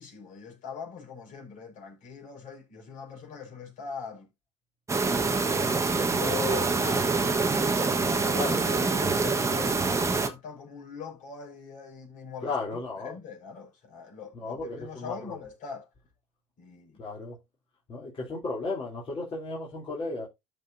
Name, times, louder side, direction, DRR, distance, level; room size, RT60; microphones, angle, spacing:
voice 1, 0.0-4.3 5.4-7.3 8.0-15.9 16.6-17.0, left 6 dB, 55° left, 4.9 m, -41 dB
sound 1, 4.9-10.3, right 4 dB, 20° right, 1.3 m, -25 dB
voice 2, 8.3-8.7 12.4-13.2 14.3-15.3 17.0-17.4 17.9-20.3, left 3 dB, 35° left, 3.4 m, -34 dB
13.0 x 5.0 x 2.7 m
hypercardioid pair, 85°, 16 cm